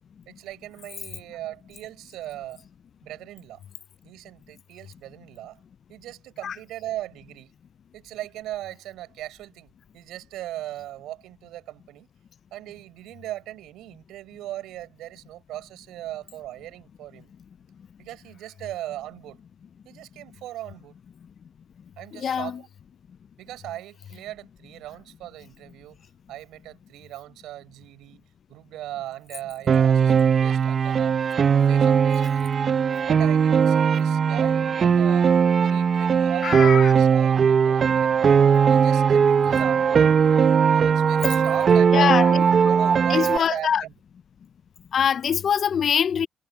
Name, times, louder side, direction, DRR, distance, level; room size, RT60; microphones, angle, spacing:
voice 1, 0.3-2.6 3.0-3.6 4.0-5.6 5.9-7.5 7.9-12.1 12.5-17.3 18.0-19.4 19.8-20.9 22.0-22.7 23.4-26.0 26.3-28.2 28.5-31.2 31.5-32.8 33.1-35.3 35.6-38.3 38.7-40.1 40.8-42.1 42.5-43.9, right 14 dB, 90° right, 6.3 m, -38 dB
voice 2, 22.1-22.5 36.4-36.9 38.5-38.7 41.9-42.4 43.1-43.8 44.9-46.3, left 8 dB, 55° left, 0.4 m, -23 dB
Piano, 29.7-43.4, right 7 dB, 50° right, 0.5 m, -19 dB
cardioid pair, 90°, 0 cm